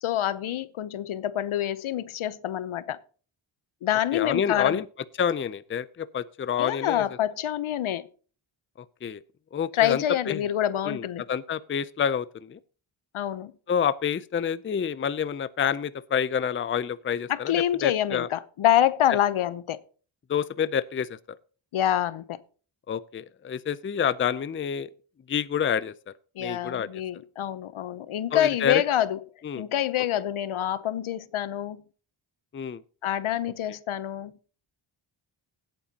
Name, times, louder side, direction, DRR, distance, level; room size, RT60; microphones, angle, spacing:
voice 1, 0.0-3.0 3.8-4.8 6.6-8.1 9.7-11.2 13.1-13.5 17.3-19.8 21.7-22.4 26.4-29.2 29.5-31.8 33.0-34.3, left 11 dB, 80° left, 0.8 m, -26 dB
voice 2, 4.1-4.8 5.2-7.0 9.0-9.2 9.5-10.4 10.8-12.6 13.7-18.3 19.1-19.2 20.3-21.4 22.9-24.9 25.3-25.9 26.4-26.9 28.3-28.8 29.4-29.6 32.5-32.8, left 8 dB, 25° left, 0.5 m, -28 dB
17.0 x 9.0 x 2.8 m
wide cardioid pair, 100°, 49 cm